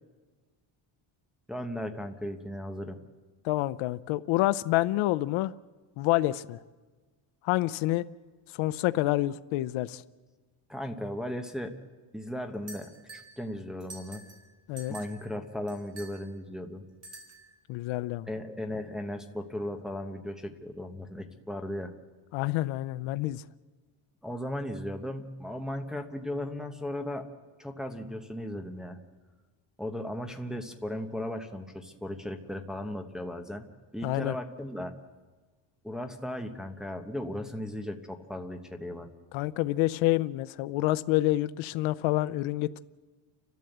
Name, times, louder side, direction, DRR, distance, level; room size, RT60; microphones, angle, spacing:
voice 1, 1.5-3.0 10.7-11.7 12.1-14.2 14.9-16.8 18.3-21.9 24.2-27.3 27.6-29.0 29.8-33.7 33.9-35.0 35.8-39.1, left 1 dB, ahead, 1.0 m, -36 dB
voice 2, 3.4-5.5 6.0-6.6 7.4-8.1 8.5-10.0 14.7-14.9 17.7-18.3 22.3-23.4 34.0-34.3 39.3-42.8, left 17 dB, 75° left, 0.7 m, -28 dB
sound 1, 12.7-13.4 13.8-14.4 14.8-15.3 15.7-16.2 17.0-17.5, right 2 dB, 30° right, 4.7 m, -47 dB
30.0 x 13.0 x 7.9 m
cardioid pair, 165°, 49 cm